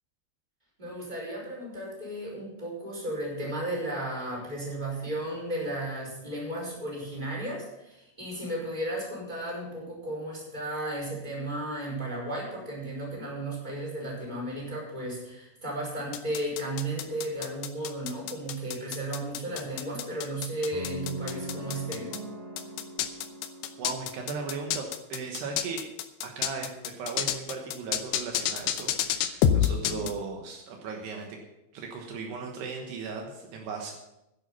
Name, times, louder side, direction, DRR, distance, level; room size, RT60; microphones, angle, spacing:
voice 1, 0.8-22.1, right 1 dB, 10° right, -3 dB, 4.7 m, -34 dB
sound 1, 16.1-22.2 22.6-30.1, left 10 dB, 80° left, 2.6 m, -28 dB
sound 2, 20.7-24.9, right 1 dB, 50° right, 5.2 m, -41 dB
voice 2, 23.8-25.9 26.2-31.4 31.7-33.9, right 4 dB, 75° right, 2 dB, 3.2 m, -37 dB
11.5 x 10.5 x 5.6 m, 0.90 s
omnidirectional pair, 5.0 m